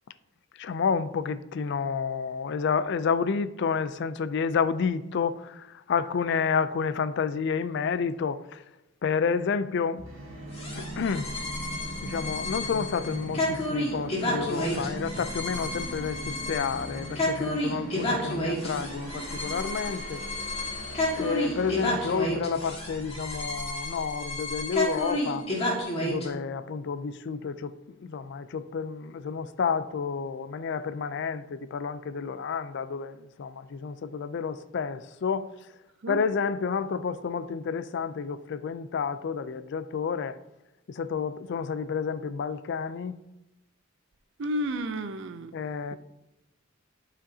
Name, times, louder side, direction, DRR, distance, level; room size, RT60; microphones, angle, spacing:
voice 1, 0.6-8.6 9.0-10.0 10.8-11.3 12.0-20.2 21.2-25.5 26.0-27.7 28.0-35.5 36.1-40.4 40.9-43.2 45.5-46.0, left 6 dB, 55° left, 0.4 m, -30 dB
Musical instrument, 10.0-23.7, right 1 dB, 90° right, 1.9 m, -41 dB
sound 1, 10.5-26.3, left 1 dB, 30° left, 1.7 m, -31 dB
voice 2, 44.4-45.5, equal, 60° right, 0.5 m, -31 dB
11.5 x 5.0 x 2.7 m
head